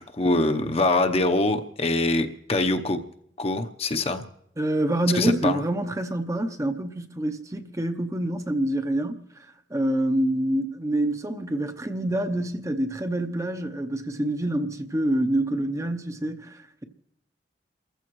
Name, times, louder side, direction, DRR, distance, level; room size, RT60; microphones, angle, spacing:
voice 1, 0.0-3.0 3.4-4.2 5.1-5.6, left 2 dB, 35° left, 0.8 m, -24 dB
voice 2, 4.6-9.2 9.7-16.8, right 1 dB, 15° right, 0.7 m, -26 dB
28.5 x 14.5 x 3.1 m
head